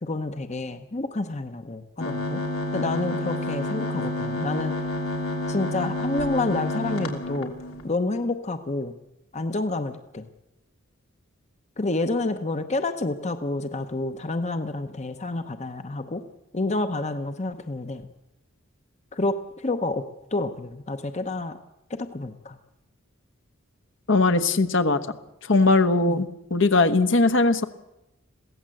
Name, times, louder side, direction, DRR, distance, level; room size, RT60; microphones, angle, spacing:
voice 1, 0.0-2.4 2.7-4.7 5.5-7.5 7.8-9.0 9.3-10.3 11.8-16.2 16.5-18.1 19.1-20.0 20.3-21.6 21.9-22.6 26.1-26.3, left 2 dB, 35° left, 9 dB, 0.9 m, -29 dB
sound 1, 2.0-7.9, left 1 dB, 90° left, 3.1 m, -29 dB
voice 2, 24.1-25.0 25.5-27.7, left 3 dB, 65° left, 8 dB, 1.2 m, -20 dB
22.0 x 16.0 x 7.8 m, 0.93 s
head